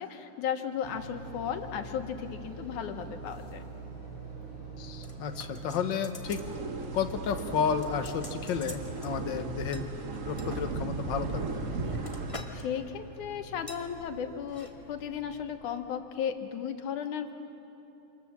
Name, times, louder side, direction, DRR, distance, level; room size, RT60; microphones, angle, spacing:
voice 1, 0.0-3.6 12.5-17.3, left 8 dB, 85° left, 6 dB, 2.7 m, -35 dB
sound 1, 0.8-15.9, right 3 dB, 40° right, 5.3 m, -45 dB
voice 2, 4.8-6.4 6.9-9.9 10.2-11.6, left 7 dB, 55° left, 7 dB, 1.4 m, -32 dB
sound 2, 5.0-6.5 6.8-7.1 7.4-9.1 9.7-10.7 11.3-12.6 12.9-13.2 13.7-13.9 14.4-14.7 15.0-15.1, left 1 dB, 15° left, 1.5 m, -47 dB
sound 3, 6.2-12.4, right 3 dB, 90° right, 0.7 m, -37 dB
27.5 x 26.0 x 7.4 m, 3.0 s
omnidirectional pair, 3.4 m